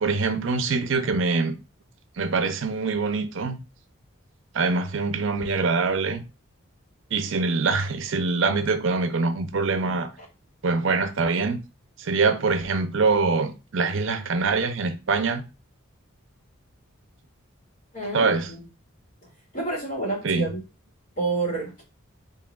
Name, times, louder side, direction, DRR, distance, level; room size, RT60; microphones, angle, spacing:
voice 1, 0.0-1.5 2.2-3.6 4.5-6.2 7.1-10.1 10.6-11.6 12.0-15.4 18.1-18.5 20.2-20.5, right 4 dB, 65° right, 0.6 m, -24 dB
voice 2, 17.9-18.6 19.5-20.6 21.2-21.8, right 3 dB, 40° left, 2.4 m, -29 dB
4.6 x 3.3 x 2.3 m
head